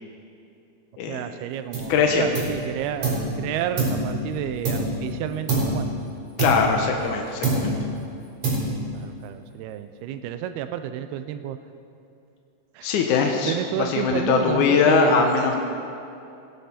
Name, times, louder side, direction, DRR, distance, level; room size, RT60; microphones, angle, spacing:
voice 1, 1.1-5.9 7.6-7.9 8.9-11.6 12.7-12.9 13.5-15.4, right 10 dB, 80° right, 10 dB, 2.4 m, -30 dB
sound 1, 1.7-2.0 2.3-3.3 3.8-5.1 5.5-5.9 6.4-7.1 7.4-7.9 8.4-9.0, right 2 dB, 45° right, 5.0 m, -25 dB
voice 2, 1.9-2.3 6.4-7.8 12.8-15.6, left 5 dB, 80° left, 3 dB, 1.8 m, -21 dB
17.5 x 11.5 x 4.3 m, 2.6 s
omnidirectional pair, 4.6 m